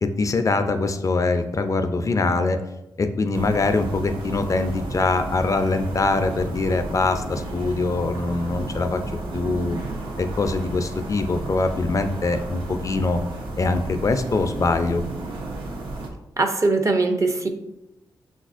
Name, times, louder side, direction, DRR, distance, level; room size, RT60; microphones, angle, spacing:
voice 1, 0.0-2.6 3.0-9.0 9.3-9.8 10.2-13.2 13.6-15.0, left 3 dB, 40° left, 8 dB, 0.3 m, -23 dB
sound 1, 3.3-16.1, right 2 dB, 80° right, 0.7 m, -33 dB
voice 2, 16.4-17.5, right 3 dB, 40° right, 6 dB, 0.6 m, -21 dB
5.6 x 2.4 x 2.4 m, 0.91 s
cardioid pair, 55°, 9 cm